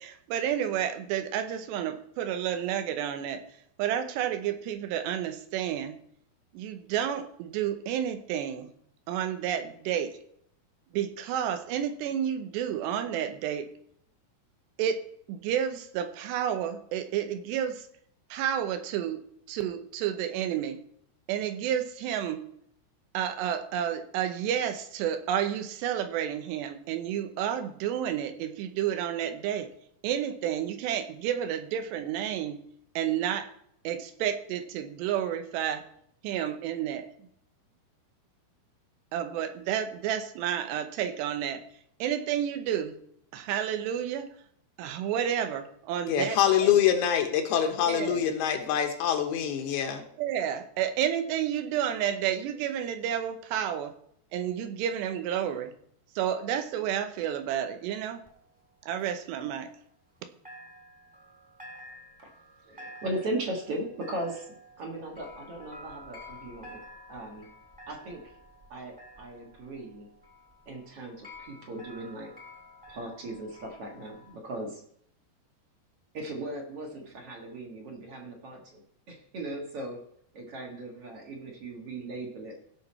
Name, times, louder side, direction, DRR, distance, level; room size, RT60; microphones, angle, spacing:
voice 1, 0.0-3.4 3.8-5.9 6.5-8.7 9.1-10.2 10.9-13.7 14.8-15.0 15.3-17.8 18.3-19.2 19.5-20.8 21.3-22.4 23.1-29.7 30.0-32.6 33.0-33.5 33.8-35.8 36.2-37.3 39.1-41.6 42.0-42.9 43.3-44.3 44.8-46.8 47.9-48.2 50.2-53.9 54.3-55.7 56.2-58.2 58.8-59.7, right 9 dB, 90° right, 8 dB, 3.1 m, -30 dB
voice 2, 46.1-50.1, left 9 dB, 75° left, 4 dB, 2.9 m, -25 dB
sound 1, 58.3-60.2 60.4-74.3, left 1 dB, 5° right, 1.3 m, -50 dB
voice 3, 62.6-66.8 67.1-67.5 67.9-68.2 68.7-70.1 70.6-72.3 72.9-74.8 76.1-80.0 80.3-82.6, right 1 dB, 55° right, 1 dB, 1.7 m, -38 dB
16.5 x 6.1 x 4.3 m, 0.68 s
omnidirectional pair, 4.8 m